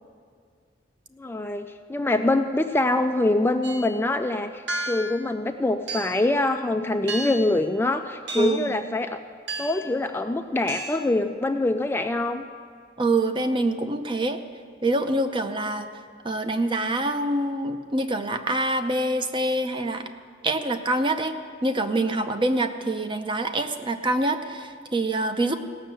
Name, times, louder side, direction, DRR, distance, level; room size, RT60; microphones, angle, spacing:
voice 1, 1.2-9.2 9.6-12.5, left 2 dB, 10° left, 6 dB, 0.4 m, -24 dB
sound 1, 3.6-3.9 4.7-5.2 5.9-6.3 7.1-7.6 8.3-8.7 9.5-9.9 10.7-11.1, right 2 dB, 65° right, 1.3 m, -33 dB
voice 2, 8.4-8.8 13.0-14.4 14.8-15.9 16.2-20.0 20.4-21.3 21.6-25.5, right 2 dB, 25° right, 8 dB, 0.7 m, -25 dB
16.5 x 6.4 x 7.7 m, 2.1 s
head